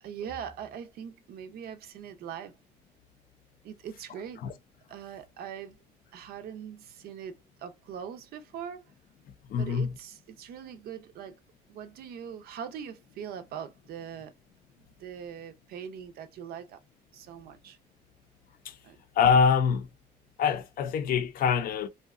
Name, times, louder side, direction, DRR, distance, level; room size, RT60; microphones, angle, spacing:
voice 1, 0.0-2.6 3.6-4.4 4.9-5.8 6.1-8.8 9.6-11.4 11.7-14.3 14.8-16.8 17.1-17.8 18.8-19.0, right 8 dB, 65° right, 0.5 m, -41 dB
voice 2, 9.5-9.9 18.6-18.8 19.2-19.9 20.4-21.9, left 6 dB, 60° left, 0.5 m, -24 dB
2.7 x 2.1 x 2.4 m
cardioid pair, 110°, 17 cm